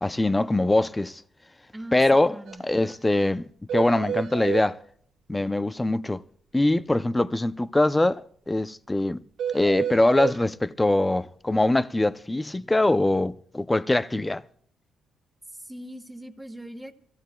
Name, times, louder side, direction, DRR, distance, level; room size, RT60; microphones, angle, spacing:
voice 1, 0.0-1.2 1.9-2.4 2.6-4.8 5.3-6.2 6.5-9.2 9.5-14.4, left 2 dB, 15° left, 0.5 m, -23 dB
voice 2, 2.3-2.6 15.6-17.0, equal, 10° right, 1.6 m, -40 dB
sound 1, 2.5-2.6 2.8-2.9 3.2-3.3 3.7-4.7 9.4-10.4, right 8 dB, 75° right, 1.9 m, -30 dB
25.0 x 16.0 x 2.3 m
cardioid pair, 90°, 0 cm